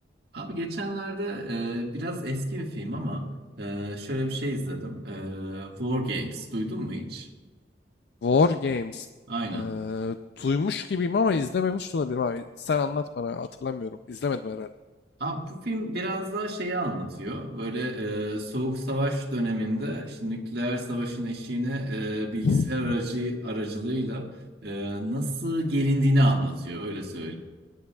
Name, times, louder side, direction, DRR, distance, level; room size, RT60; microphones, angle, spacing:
voice 1, 0.3-3.3 3.6-7.3 9.3-9.7 15.2-24.3 24.6-27.4, equal, 60° right, 0 dB, 1.8 m, -29 dB
voice 2, 8.2-9.1 9.5-14.7 22.4-22.9, left 4 dB, 60° left, 10 dB, 0.4 m, -26 dB
19.5 x 11.0 x 2.3 m, 1.3 s
head